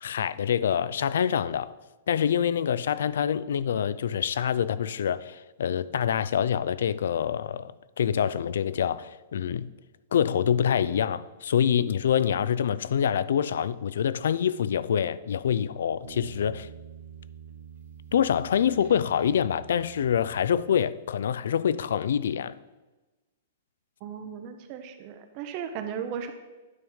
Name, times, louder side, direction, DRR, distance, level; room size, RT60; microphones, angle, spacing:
voice 1, 0.0-1.8 2.1-7.7 8.0-9.7 10.1-16.7 18.1-22.6, left 8 dB, 75° left, 0.3 m, -26 dB
sound 1, 16.0-21.0, right 8 dB, 60° right, 1.0 m, -47 dB
voice 2, 24.0-26.3, right 8 dB, 35° right, 0.5 m, -36 dB
9.5 x 3.5 x 5.5 m
hypercardioid pair, 165°, 0 cm